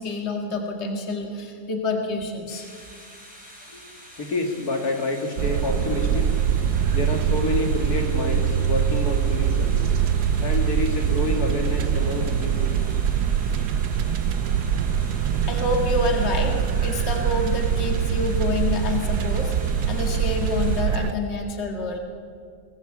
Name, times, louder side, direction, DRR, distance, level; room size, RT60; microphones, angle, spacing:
voice 1, 0.0-2.6 15.4-19.5 19.9-22.0, left 3 dB, 45° left, 3 dB, 2.1 m, -27 dB
sound 1, 2.5-20.8, equal, 5° right, 5.1 m, -45 dB
voice 2, 3.7-6.4 6.9-9.8 10.4-12.8, left 2 dB, 70° left, 2 dB, 2.9 m, -28 dB
sound 2, 5.4-21.1, right 8 dB, 90° right, 1.3 m, -23 dB
23.5 x 19.0 x 7.5 m, 2.2 s
omnidirectional pair, 1.7 m